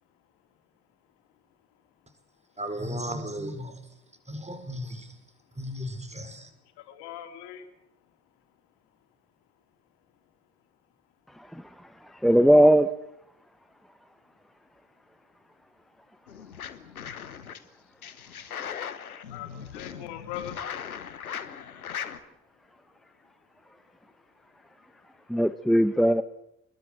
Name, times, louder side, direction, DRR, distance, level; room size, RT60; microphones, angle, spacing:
voice 1, 0.1-0.7 1.0-2.6 4.1-4.3 5.3-5.6 6.7-9.0 11.5-11.6 15.5-15.6 16.1-16.2 16.4-25.4, left 11 dB, 70° left, 6 dB, 3.4 m, -48 dB
voice 2, 2.6-3.8 4.3-5.2 5.5-6.5, equal, 15° right, 9 dB, 4.7 m, -35 dB
voice 3, 12.0-12.9 25.3-26.2, equal, ahead, 11 dB, 1.3 m, -19 dB
sound 1, 16.3-17.6 18.0-22.2, left 8 dB, 90° left, 1.1 m, -39 dB
26.5 x 21.5 x 7.7 m, 0.76 s
figure-of-eight pair, 45°, 42 cm